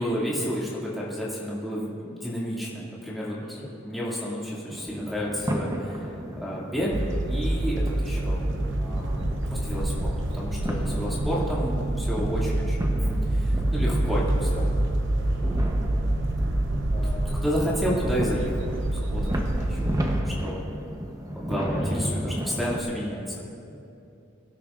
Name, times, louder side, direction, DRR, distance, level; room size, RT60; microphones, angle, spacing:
voice 1, 0.0-13.0 13.3-14.7 17.3-19.9 20.2-20.6 21.3-23.5, equal, ahead, -8 dB, 2.4 m, -31 dB
sound 1, 4.7-22.8, equal, 20° right, 0.9 m, -34 dB
sound 2, 6.9-20.2, right 1 dB, 65° right, 0.8 m, -26 dB
voice 2, 10.6-11.0 14.4-14.7 15.3-15.6 16.9-17.5 21.5-22.2 23.6-24.0, equal, 35° left, -5 dB, 2.3 m, -40 dB
23.0 x 12.5 x 2.6 m, 2.8 s
head